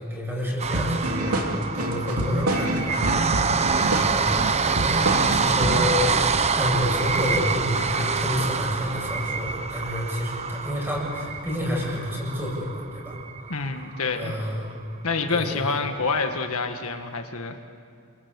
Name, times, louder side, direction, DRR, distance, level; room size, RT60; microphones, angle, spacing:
voice 1, 0.0-3.0 3.8-4.4 4.9-13.2 14.1-14.7 15.3-15.6, left 1 dB, 10° right, -2 dB, 7.9 m, -29 dB
sound 1, 0.6-14.7 15.1-15.2 15.5-15.6, right 5 dB, 30° right, 0.9 m, -26 dB
sound 2, 0.7-5.9, right 1 dB, 80° right, 3.0 m, -27 dB
voice 2, 13.5-14.3 15.0-17.6, left 4 dB, 75° left, 5 dB, 1.6 m, -27 dB
28.5 x 24.5 x 8.4 m, 2.4 s
head